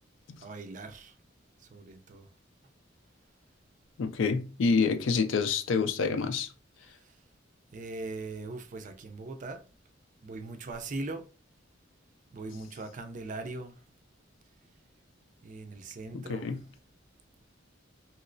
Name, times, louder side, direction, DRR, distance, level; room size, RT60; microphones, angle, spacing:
voice 1, 0.4-1.1 1.6-2.3 7.0-7.1 7.7-9.6 10.2-11.2 12.3-13.8 15.4-16.5, right 3 dB, 40° right, 0.4 m, -40 dB
voice 2, 4.0-6.5 16.1-16.6, left 5 dB, 75° left, 0.4 m, -27 dB
3.1 x 2.9 x 2.5 m
head